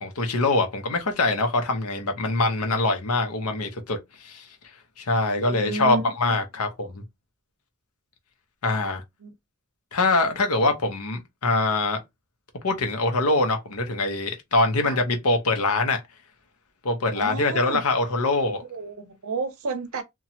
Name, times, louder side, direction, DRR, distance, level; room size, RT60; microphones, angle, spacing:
voice 1, 0.0-4.5 5.0-7.0 8.6-9.0 9.9-12.0 12.6-16.0 16.8-18.6, left 2 dB, 75° left, 0.8 m, -24 dB
voice 2, 5.3-6.4 9.2-9.3 14.8-15.0 17.1-17.8 18.7-20.0, right 3 dB, 65° right, 0.6 m, -32 dB
2.9 x 2.3 x 2.7 m
head